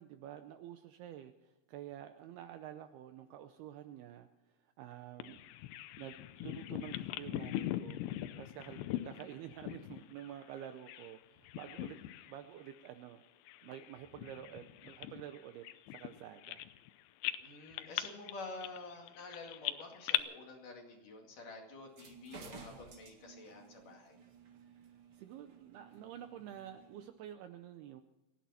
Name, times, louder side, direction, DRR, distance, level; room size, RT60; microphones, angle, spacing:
voice 1, 0.0-4.3 4.6-5.5 6.0-8.0 8.4-12.0 12.3-13.2 13.6-16.6 24.6-28.0, right 11 dB, 80° right, 9 dB, 2.3 m, -49 dB
Bird vocalization bird call bird song, 5.2-11.2 11.4-12.4 12.7-12.9 13.5-16.9 17.2-20.2, left 14 dB, 80° left, 2.9 m, -41 dB
voice 2, 17.4-24.2, left 3 dB, 50° left, 1 dB, 3.4 m, -49 dB
sound 1, 21.8-27.1, right 5 dB, 55° right, 1.6 m, -55 dB
29.0 x 10.5 x 4.2 m, 1.0 s
omnidirectional pair, 5.2 m